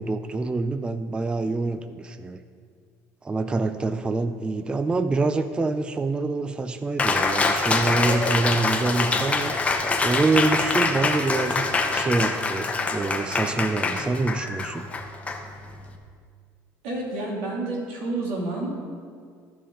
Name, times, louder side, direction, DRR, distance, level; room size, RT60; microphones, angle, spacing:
voice 1, 0.0-2.4 3.2-9.7 10.0-14.9, right 3 dB, 15° right, 10 dB, 0.3 m, -26 dB
Cheering, 7.0-15.9, left 3 dB, 20° left, 0.8 m, -25 dB
voice 2, 16.8-18.8, right 2 dB, 90° right, -3 dB, 2.4 m, -29 dB
14.5 x 5.3 x 3.7 m, 2.1 s
cardioid pair, 125°, 7 cm